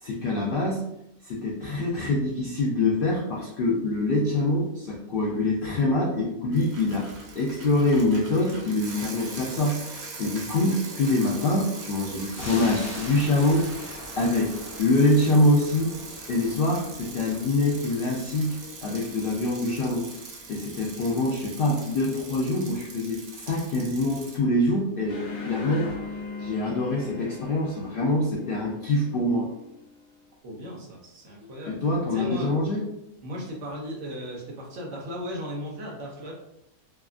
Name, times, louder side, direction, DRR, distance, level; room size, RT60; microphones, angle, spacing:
voice 1, 0.0-0.8 1.2-15.9 16.3-20.2 20.5-25.9 26.4-29.5 31.4-32.8, left 2 dB, 85° left, -3 dB, 0.4 m, -25 dB
Bicycle, 6.5-24.4, right 3 dB, 85° right, 1.1 m, -42 dB
sound 1, 12.3-23.3 23.7-23.8, equal, 20° left, 0.4 m, -44 dB
sound 2, 25.1-30.1, left 3 dB, 55° left, 0.9 m, -39 dB
voice 2, 30.4-31.8 32.1-32.5 33.2-36.3, equal, 65° right, -2 dB, 1.0 m, -36 dB
2.8 x 2.3 x 2.4 m, 0.81 s
omnidirectional pair, 1.5 m